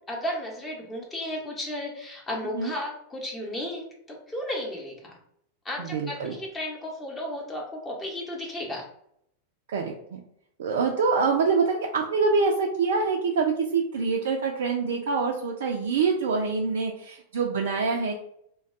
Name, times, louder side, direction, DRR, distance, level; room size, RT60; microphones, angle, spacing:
voice 1, 0.1-5.2 5.6-8.8, left 1 dB, 15° left, -2 dB, 0.8 m, -34 dB
voice 2, 5.8-6.3 9.7-10.2 10.6-18.1, right 4 dB, 60° right, 0 dB, 0.3 m, -25 dB
2.2 x 2.2 x 3.6 m, 0.71 s
figure-of-eight pair, 90°, 0 cm